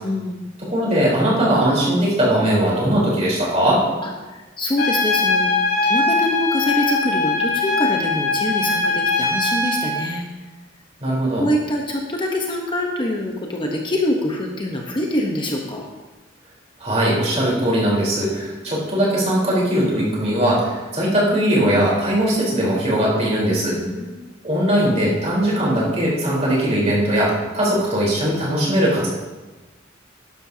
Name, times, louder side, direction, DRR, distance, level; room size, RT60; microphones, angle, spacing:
voice 1, 0.0-0.5 4.0-5.5 5.8-10.3 11.4-15.9 23.8-24.3, left 1 dB, 25° left, 0 dB, 1.0 m, -24 dB
voice 2, 0.7-3.8 11.0-11.4 16.8-23.8 24.4-29.1, right 1 dB, 35° right, -5 dB, 4.1 m, -19 dB
Trumpet, 4.8-10.0, left 3 dB, 55° left, 3.3 m, -21 dB
12.0 x 12.0 x 2.9 m, 1.2 s
head